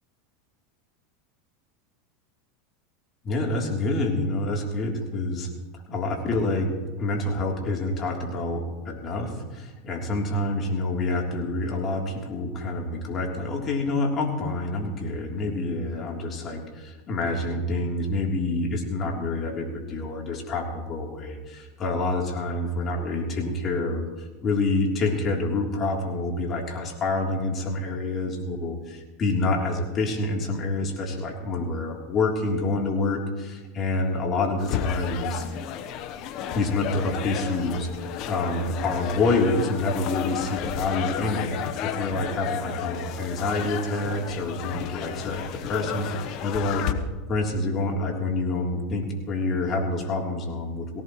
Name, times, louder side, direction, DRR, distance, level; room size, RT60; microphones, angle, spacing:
voice 1, 3.2-5.5 5.9-6.7 7.0-35.5 36.5-37.9 38.3-41.5 41.8-46.9 47.3-51.0, left 2 dB, 35° left, 0 dB, 3.5 m, -27 dB
sound 1, 34.6-46.9, left 9 dB, 55° left, 1.0 m, -32 dB
19.0 x 17.0 x 3.2 m, 1.3 s
supercardioid pair, 115°, 0 cm